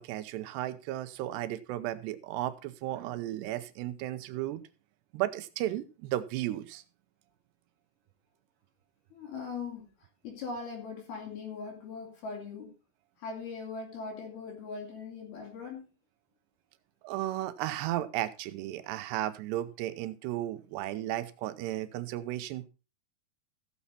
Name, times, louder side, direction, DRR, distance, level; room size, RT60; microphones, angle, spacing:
voice 1, 0.0-4.6 5.1-6.8 17.0-22.6, right 14 dB, 90° right, 12 dB, 3.0 m, -34 dB
voice 2, 9.1-9.9 10.2-12.7 13.2-15.9, left 4 dB, 65° left, 0 dB, 4.8 m, -40 dB
15.5 x 7.2 x 4.1 m, 0.32 s
omnidirectional pair, 4.7 m